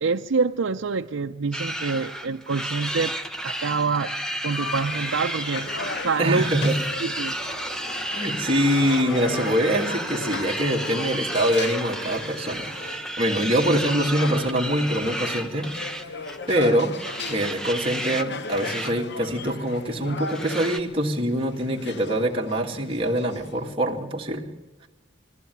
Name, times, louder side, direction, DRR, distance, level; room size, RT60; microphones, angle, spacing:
voice 1, 0.0-3.1 3.4-4.2 4.4-5.7 6.0-6.5 7.0-7.4, right 4 dB, 85° right, 3 dB, 0.6 m, -26 dB
sound 1, 1.5-16.5 17.0-18.2 18.5-18.9 19.2-19.3 20.3-20.8, right 1 dB, 5° left, 1.1 m, -32 dB
sound 2, 4.5-13.0, left 1 dB, 75° left, 4.7 m, -40 dB
sound 3, 5.5-23.7, left 4 dB, 60° left, 0.9 m, -38 dB
voice 2, 6.2-6.8 8.1-15.7 16.5-16.9 17.3-24.5, equal, 30° right, -1 dB, 2.3 m, -24 dB
20.5 x 15.0 x 9.4 m, 1.1 s
head